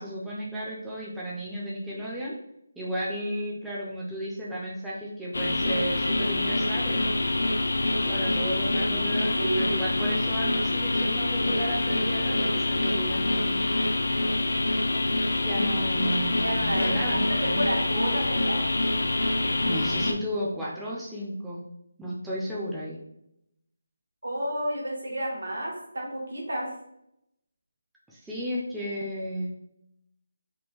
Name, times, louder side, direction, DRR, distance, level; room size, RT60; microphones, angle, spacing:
voice 1, 0.0-2.3 2.8-7.0 8.0-13.6 15.4-17.7 19.6-21.6 22.0-23.0 28.1-29.5, equal, 5° right, -7 dB, 0.4 m, -33 dB
sound 1, 5.3-20.1, left 2 dB, 75° left, 0.4 m, -26 dB
voice 2, 16.4-17.1 17.4-18.6 24.2-26.7, right 1 dB, 80° right, -1 dB, 1.1 m, -31 dB
3.6 x 2.2 x 2.9 m, 0.78 s
figure-of-eight pair, 165°, 0 cm